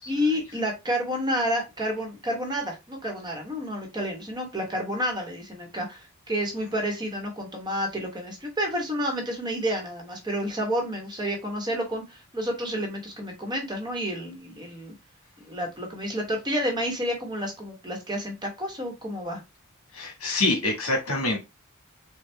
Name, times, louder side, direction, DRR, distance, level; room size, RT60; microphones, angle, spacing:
voice 1, 0.1-14.9 15.4-19.4, equal, 20° right, 1 dB, 1.2 m, -30 dB
voice 2, 19.9-21.4, left 2 dB, 70° left, 1 dB, 1.6 m, -26 dB
4.4 x 2.3 x 3.3 m, 0.24 s
head